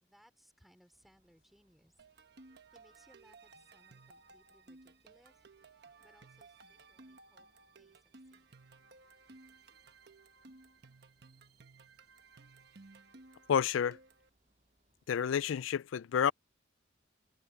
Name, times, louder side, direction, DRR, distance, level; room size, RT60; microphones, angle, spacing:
voice 1, 0.0-2.1 2.7-8.6, equal, ahead, 3.7 m, -67 dB
sound 1, 0.9-15.6, right 1 dB, 35° right, 7.9 m, -77 dB
sound 2, 2.0-14.3, right 3 dB, 55° right, 1.1 m, -58 dB
voice 2, 13.5-14.0 15.1-16.3, left 8 dB, 80° left, 0.4 m, -30 dB
head